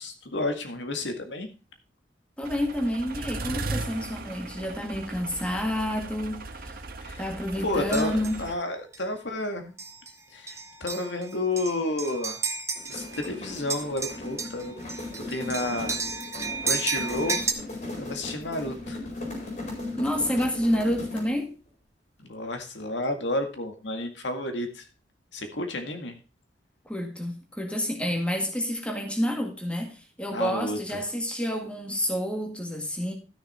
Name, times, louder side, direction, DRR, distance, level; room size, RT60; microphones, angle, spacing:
voice 1, 0.0-1.5 7.0-7.3 7.6-9.7 10.3-12.4 12.9-16.0 16.6-17.4 18.0-19.0 22.2-24.9 25.3-26.1 30.3-31.0, left 2 dB, 80° left, 1.9 m, -31 dB
voice 2, 2.4-6.8 7.2-8.4 20.0-21.5 26.9-33.1, equal, 5° left, 1.9 m, -29 dB
sound 1, 2.4-8.5, right 2 dB, 55° right, 1.2 m, -37 dB
sound 2, 7.9-8.4 8.9-9.1 9.8-10.1 10.5-13.3 13.6-17.5, right 4 dB, 15° right, 1.1 m, -33 dB
sound 3, 12.8-21.4, left 2 dB, 45° left, 4.6 m, -37 dB
13.0 x 6.6 x 4.3 m
head